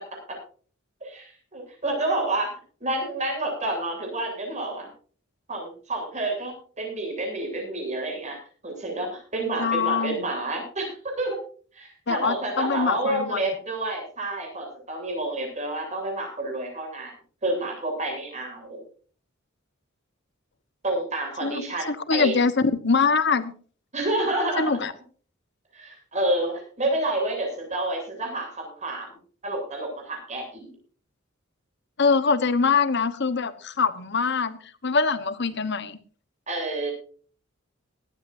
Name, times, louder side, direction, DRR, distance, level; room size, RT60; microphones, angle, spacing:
voice 1, 1.0-2.5 2.8-4.9 5.5-10.9 11.2-11.4 11.7-17.1 17.4-18.8 20.8-22.3 23.9-24.9 25.7-29.2 29.4-30.7 36.5-36.9, right 2 dB, 35° right, 1 dB, 7.8 m, -29 dB
voice 2, 9.6-10.2 12.1-13.4 21.4-23.5 24.6-24.9 32.0-36.0, left 5 dB, 60° left, 13 dB, 1.2 m, -23 dB
19.0 x 14.5 x 2.7 m, 0.42 s
head